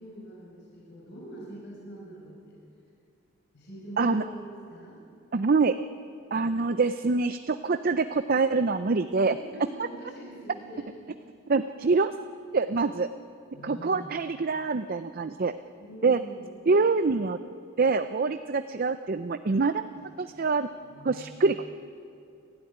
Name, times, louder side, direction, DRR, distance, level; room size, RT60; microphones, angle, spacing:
voice 1, 0.0-2.6 3.5-5.0 9.3-11.0 13.5-14.3 15.8-16.5 20.0-20.1 20.8-21.4, equal, 55° left, -5 dB, 6.0 m, -44 dB
voice 2, 5.3-5.8 6.3-9.4 11.5-12.1 12.5-13.1 13.6-15.5 16.0-16.2 16.7-17.4 17.8-19.9 20.2-20.7 21.0-21.6, right 4 dB, 45° right, 10 dB, 0.5 m, -25 dB
29.0 x 12.5 x 9.9 m, 2.5 s
head